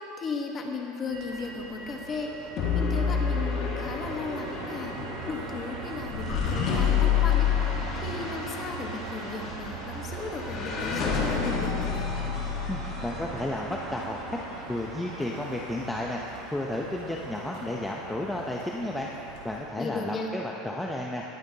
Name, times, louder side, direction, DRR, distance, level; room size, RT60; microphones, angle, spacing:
voice 1, 0.0-7.5 7.9-12.1 19.8-20.3, left 4 dB, 25° left, 1 dB, 1.2 m, -36 dB
Motor vehicle (road), 1.1-19.6, right 3 dB, 80° right, 2.9 m, -40 dB
sound 1, 2.6-13.9, left 7 dB, 45° left, 1.9 m, -29 dB
voice 2, 12.7-14.2 14.7-19.1 19.4-21.2, left 1 dB, 5° left, -2 dB, 0.6 m, -32 dB
20.5 x 9.2 x 2.8 m, 2.9 s
supercardioid pair, 150°, 0 cm